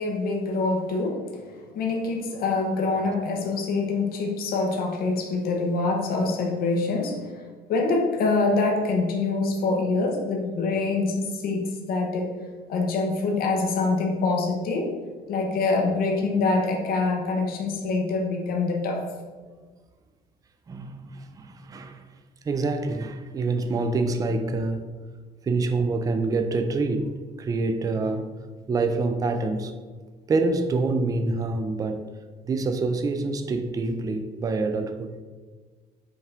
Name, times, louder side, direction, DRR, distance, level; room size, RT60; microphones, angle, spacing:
voice 1, 0.0-7.4 7.7-12.3 12.7-14.9 15.3-19.0, left 3 dB, 60° left, 2 dB, 0.7 m, -25 dB
voice 2, 20.7-22.0 22.5-24.8 25.4-27.1 27.4-28.3 28.7-29.7 30.3-32.0 32.5-35.1, right 3 dB, 20° right, 7 dB, 0.3 m, -26 dB
5.3 x 2.4 x 3.3 m, 1.4 s
cardioid pair, 110°, 17 cm